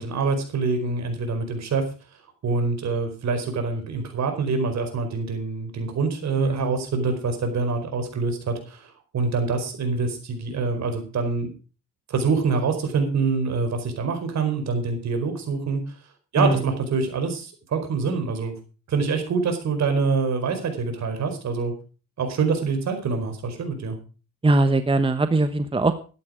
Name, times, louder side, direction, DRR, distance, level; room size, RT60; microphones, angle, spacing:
voice 1, 0.0-1.8 2.4-11.5 12.1-15.8 16.3-18.6 18.9-21.7 22.2-24.0, right 4 dB, 65° right, 6 dB, 4.7 m, -25 dB
voice 2, 24.4-25.9, right 2 dB, 20° right, 10 dB, 1.1 m, -21 dB
13.5 x 11.0 x 5.0 m, 0.36 s
cardioid pair, 90°, 30 cm